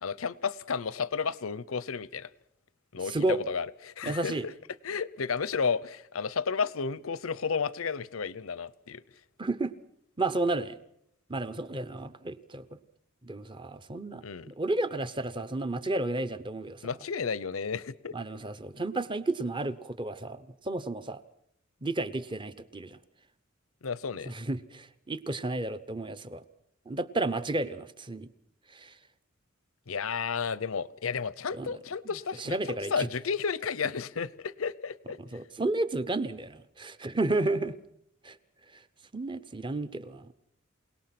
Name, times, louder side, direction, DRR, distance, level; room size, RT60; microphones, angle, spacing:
voice 1, 0.0-2.3 2.9-4.3 4.8-9.0 14.2-14.5 16.8-18.2 23.8-24.3 29.9-32.5 32.9-35.2, left 5 dB, 85° left, 19 dB, 0.8 m, -32 dB
voice 2, 3.0-3.4 4.0-4.4 9.4-9.7 10.2-10.8 11.3-12.7 13.2-16.9 18.1-21.2 21.8-23.0 24.2-26.4 26.9-28.3 28.7-29.0 31.5-31.8 32.0-32.1 32.4-33.1 35.2-37.8 38.2-38.4 38.7-38.8 39.1-40.3, right 2 dB, 25° right, 12 dB, 0.9 m, -32 dB
28.0 x 18.5 x 6.0 m, 0.73 s
head